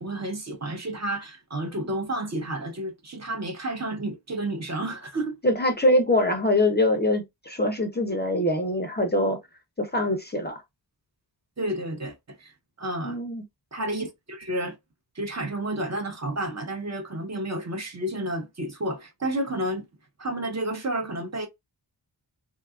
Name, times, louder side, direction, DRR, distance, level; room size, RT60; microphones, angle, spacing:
voice 1, 0.0-5.4 11.6-12.5 12.8-13.2 13.7-14.8 15.2-19.9 20.2-21.5, right 1 dB, 40° right, 0.6 m, -31 dB
voice 2, 5.4-9.4 9.8-10.6 13.0-13.4, left 1 dB, 25° left, 0.5 m, -23 dB
2.7 x 2.3 x 2.3 m
wide cardioid pair, 60°, 45 cm